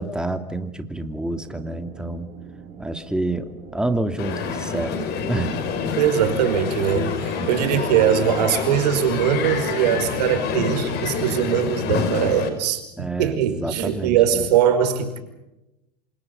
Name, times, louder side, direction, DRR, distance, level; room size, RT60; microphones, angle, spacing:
voice 1, 0.0-2.3 2.8-5.0 5.3-5.5 7.3-7.7 13.0-14.5, right 2 dB, 5° right, 7 dB, 2.5 m, -28 dB
sound 1, 1.3-6.3, right 6 dB, 50° right, 6.7 m, -42 dB
Crowd, 4.2-12.5, left 5 dB, 55° left, 5.4 m, -27 dB
voice 2, 6.0-15.2, right 9 dB, 80° right, 8 dB, 5.1 m, -21 dB
27.5 x 27.0 x 5.4 m, 0.93 s
supercardioid pair, 105°, 21 cm